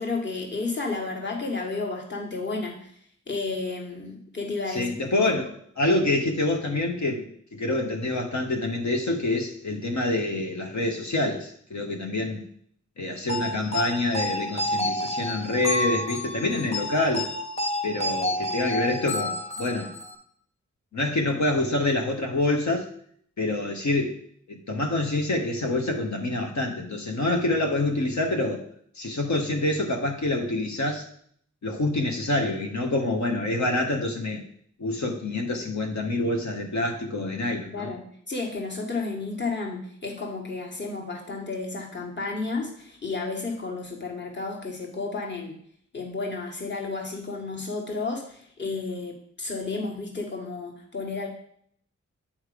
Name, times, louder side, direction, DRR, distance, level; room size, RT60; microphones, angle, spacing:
voice 1, 0.0-2.9 3.3-4.9 5.2-5.3 37.7-45.6 45.9-51.3, left 3 dB, 35° left, 0 dB, 1.7 m, -32 dB
voice 2, 4.7-5.5 5.8-7.2 7.5-12.4 13.0-17.3 17.8-19.9 20.9-22.9 23.4-24.2 24.5-28.6 29.0-31.1 31.6-34.4 34.8-37.9, left 2 dB, 70° left, 2 dB, 1.1 m, -26 dB
sound 1, 13.3-20.2, left 1 dB, 20° left, 1.4 m, -30 dB
8.7 x 3.2 x 5.0 m, 0.64 s
cardioid pair, 45°, 30 cm